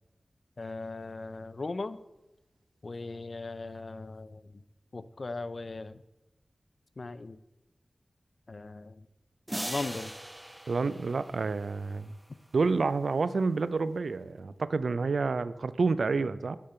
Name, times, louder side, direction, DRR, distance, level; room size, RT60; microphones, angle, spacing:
voice 1, 0.6-2.0 2.8-4.4 4.9-6.0 7.0-7.4 8.5-8.9 9.6-10.1, left 3 dB, 60° left, 14 dB, 0.4 m, -38 dB
sound 1, 9.5-12.0, right 1 dB, 15° right, 0.6 m, -40 dB
voice 2, 10.7-12.1 12.5-16.6, right 4 dB, 80° right, 15 dB, 0.4 m, -29 dB
12.0 x 5.2 x 4.3 m, 1.0 s
cardioid pair, 40°, 0 cm